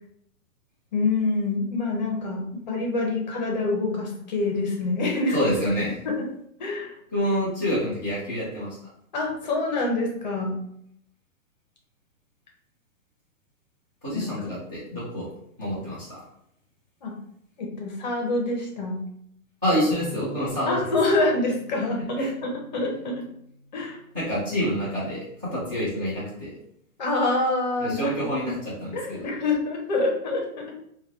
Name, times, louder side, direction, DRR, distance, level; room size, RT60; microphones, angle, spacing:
voice 1, 0.9-5.4 6.0-6.2 6.6-7.0 9.1-10.6 14.1-14.3 17.0-17.2 17.6-19.0 20.7-23.2 23.7-24.0 27.0-28.1 28.4-28.5 28.9-30.6, left 2 dB, 30° left, 0 dB, 0.6 m, -26 dB
voice 2, 5.3-5.9 7.1-8.8 14.0-15.3 15.6-16.2 19.6-20.8 22.2-22.3 24.1-26.5 27.8-29.3, equal, 15° right, -15 dB, 0.3 m, -27 dB
Bass guitar, 19.9-24.3 25.0-26.1, left 3 dB, 85° right, 0.9 m, -46 dB
2.8 x 2.2 x 3.3 m, 0.72 s
hypercardioid pair, 160°, 43 cm